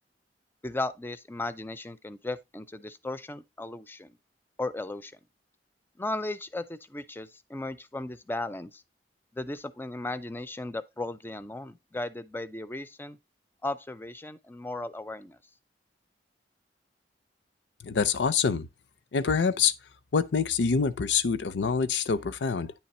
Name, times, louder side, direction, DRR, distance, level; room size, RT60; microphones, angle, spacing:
voice 1, 0.6-4.2 4.6-5.1 6.0-8.8 9.3-13.2 13.6-15.4, left 2 dB, 10° left, 0.4 m, -36 dB
voice 2, 17.8-18.7 19.1-19.7 20.1-22.7, left 5 dB, 75° left, 0.5 m, -26 dB
9.5 x 3.2 x 4.2 m
head